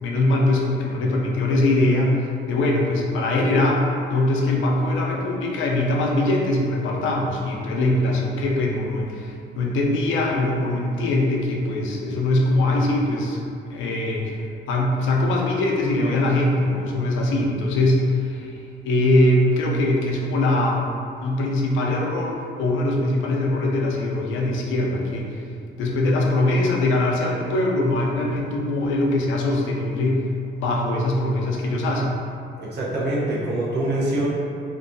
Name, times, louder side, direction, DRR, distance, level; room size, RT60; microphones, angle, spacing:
voice 1, 0.0-14.4 14.7-20.9 21.2-25.4 25.8-30.2 30.5-32.1, left 1 dB, 80° left, -1 dB, 0.5 m, -22 dB
voice 2, 32.6-34.3, right 1 dB, 60° right, -5 dB, 0.7 m, -24 dB
2.5 x 2.2 x 2.5 m, 2.5 s
cardioid pair, 90°, 20 cm